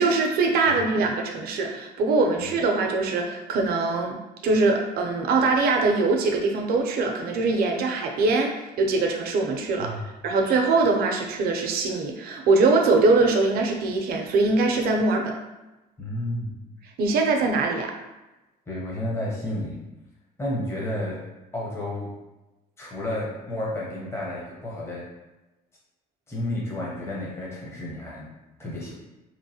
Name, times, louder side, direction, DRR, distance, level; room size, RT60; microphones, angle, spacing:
voice 1, 0.0-4.2 4.4-9.9 10.2-15.3 17.0-17.9, right 3 dB, 65° right, 2 dB, 0.5 m, -22 dB
voice 2, 0.7-1.1 2.4-2.5 9.8-10.0 16.0-16.6 18.7-19.8 20.4-21.2 21.5-22.1 22.8-25.1 26.3-28.3 28.6-28.9, left 1 dB, 15° left, -5 dB, 0.7 m, -31 dB
3.0 x 2.1 x 2.7 m, 1.0 s
cardioid pair, 110°, 17 cm